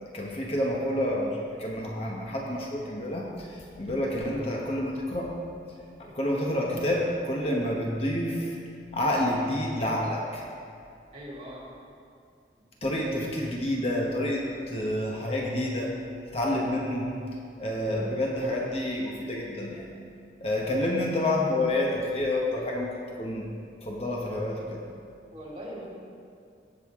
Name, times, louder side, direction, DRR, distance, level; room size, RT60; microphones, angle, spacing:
voice 1, 0.1-5.3 6.0-8.6 8.9-10.5 12.8-15.9 16.3-17.1 17.6-19.9 20.4-23.5 23.8-24.8, left 1 dB, 35° left, -2 dB, 1.0 m, -29 dB
voice 2, 11.1-11.6 20.6-20.9 25.3-25.9, equal, 30° right, -7 dB, 2.5 m, -41 dB
17.5 x 6.7 x 3.6 m, 2.4 s
head